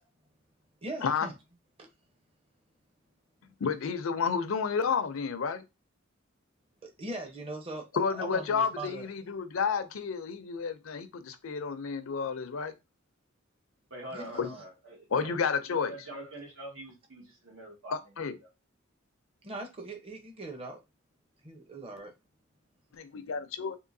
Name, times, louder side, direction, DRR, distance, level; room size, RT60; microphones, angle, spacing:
voice 1, 0.8-1.3 6.8-9.1 14.1-14.6 19.4-20.8 21.4-22.1, right 2 dB, 30° right, 0.8 m, -40 dB
voice 2, 3.6-5.6 7.9-12.7 14.4-14.5 15.1-15.9 17.9-18.4 23.0-23.8, left 5 dB, 80° left, 0.5 m, -31 dB
voice 3, 13.9-15.4 15.7-18.0 18.4-18.5, right 1 dB, 85° right, 1.5 m, -44 dB
3.6 x 2.6 x 2.6 m
head